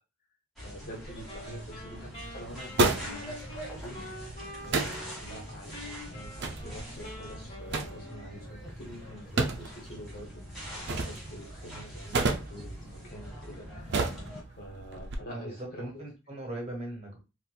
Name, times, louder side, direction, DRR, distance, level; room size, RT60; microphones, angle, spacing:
voice 1, 0.6-4.1 4.6-15.8, equal, 50° left, -1 dB, 1.2 m, -47 dB
sound 1, 0.6-14.4, equal, ahead, 1.6 m, -44 dB
sound 2, 1.0-15.1, right 3 dB, 60° right, 0.5 m, -35 dB
Wind instrument woodwind instrument, 1.2-5.4 5.7-8.6, left 1 dB, 30° left, 1.5 m, -46 dB
voice 2, 15.3-17.2, right 1 dB, 30° right, -2 dB, 1.3 m, -39 dB
4.1 x 2.5 x 2.3 m, 0.28 s
head